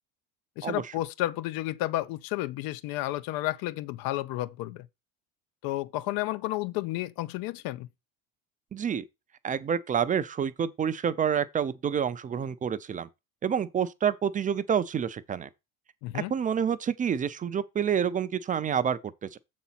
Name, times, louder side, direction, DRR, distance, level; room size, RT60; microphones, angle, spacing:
voice 1, 0.6-4.9 5.6-7.9 16.0-16.3, left 16 dB, 65° left, 0.7 m, -31 dB
voice 2, 8.7-9.0 9.4-13.1 13.4-15.5 16.1-19.4, right 8 dB, 20° right, 0.4 m, -28 dB
7.1 x 4.1 x 5.8 m
cardioid pair, 135°, 38 cm